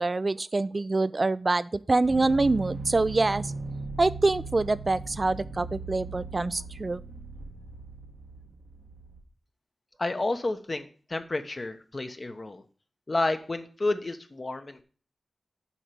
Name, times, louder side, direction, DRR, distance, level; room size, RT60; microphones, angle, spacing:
voice 1, 0.0-3.5 4.0-7.0, right 3 dB, 45° right, 15 dB, 0.4 m, -25 dB
sound 1, 2.0-9.2, right 3 dB, 90° right, 1.4 m, -39 dB
voice 2, 10.0-12.6 13.1-14.8, left 2 dB, 45° left, 7 dB, 1.0 m, -30 dB
7.2 x 4.7 x 6.9 m, 0.42 s
cardioid pair, 50°, 0 cm